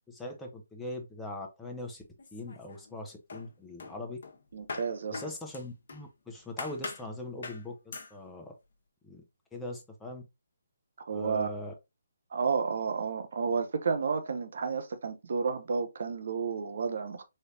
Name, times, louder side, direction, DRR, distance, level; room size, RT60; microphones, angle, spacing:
voice 1, 0.1-2.0 2.3-4.2 5.1-8.5 9.0-9.2 9.5-10.2 11.1-11.7, left 1 dB, 5° left, 0.9 m, -41 dB
sound 1, 2.2-3.0 3.3-6.1 6.6-7.1 7.4-7.7 7.9-8.2, left 4 dB, 60° left, 1.0 m, -42 dB
voice 2, 4.5-5.2 11.1-11.5 12.3-17.3, right 5 dB, 60° right, 0.9 m, -31 dB
4.3 x 3.3 x 2.7 m
hypercardioid pair, 150°, 0 cm